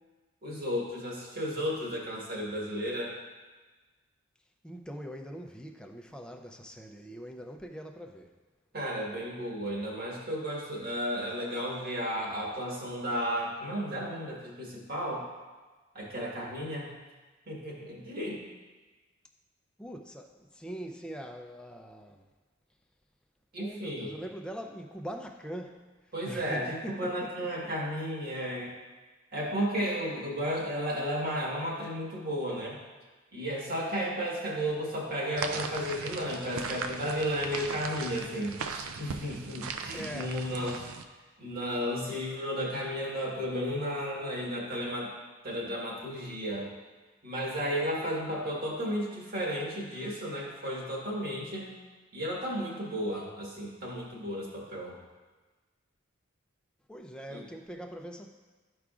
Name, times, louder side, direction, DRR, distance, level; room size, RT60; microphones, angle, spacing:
voice 1, 0.4-3.2 8.7-15.2 15.9-16.9 17.5-18.4 23.5-24.2 26.1-28.7 29.3-32.8 33.3-40.8 41.4-45.1 45.4-46.7 47.2-51.7 52.1-55.0 57.3-57.4, equal, 45° right, -3 dB, 1.5 m, -33 dB
voice 2, 4.6-8.3 19.8-22.2 23.6-25.9 26.3-27.5 39.9-40.4 56.9-58.3, equal, 5° left, 3 dB, 0.4 m, -42 dB
sound 1, 35.4-41.0, right 5 dB, 85° right, 0.5 m, -38 dB
12.5 x 4.8 x 2.4 m, 1.3 s
head